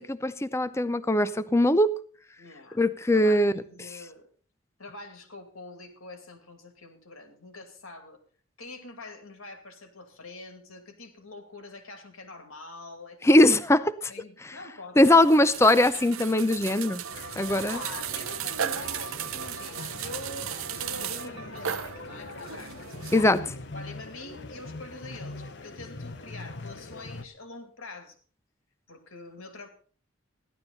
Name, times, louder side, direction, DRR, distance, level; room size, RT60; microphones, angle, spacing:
voice 1, 0.0-1.9 2.8-3.5 3.9-4.0 13.2-14.1 14.4-14.6 15.0-17.0 17.4-17.8 23.1-23.4, left 1 dB, 15° left, 13 dB, 0.5 m, -21 dB
voice 2, 2.4-2.8 3.1-4.3 4.8-8.2 8.6-13.3 14.1-15.2 17.6-23.4 23.7-28.2 28.9-29.7, left 2 dB, 80° left, 7 dB, 2.4 m, -45 dB
sound 1, 15.0-23.4, right 9 dB, 80° right, 0.7 m, -36 dB
sound 2, 17.1-27.3, left 3 dB, 55° left, 0.9 m, -42 dB
15.5 x 11.5 x 4.0 m, 0.41 s
head